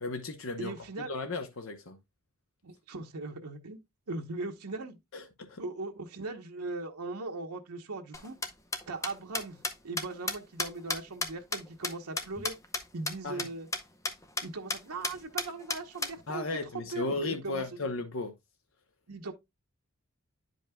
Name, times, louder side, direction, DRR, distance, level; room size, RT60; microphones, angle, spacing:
voice 1, 0.0-2.0 5.1-5.6 13.2-13.5 16.3-18.3, left 3 dB, 60° left, 0.8 m, -35 dB
voice 2, 0.6-1.1 2.6-3.8 4.1-5.0 5.6-8.4 8.9-9.6 9.8-12.5 12.9-13.7 14.4-16.5 16.9-17.8 19.1-19.3, right 3 dB, 90° right, 1.0 m, -39 dB
sound 1, 8.1-12.8 13.1-13.2 13.4-13.5 13.7-13.8 14.0-14.4 14.7-14.8 15.0-16.1, left 3 dB, 15° left, 0.6 m, -32 dB
10.5 x 5.2 x 2.2 m
head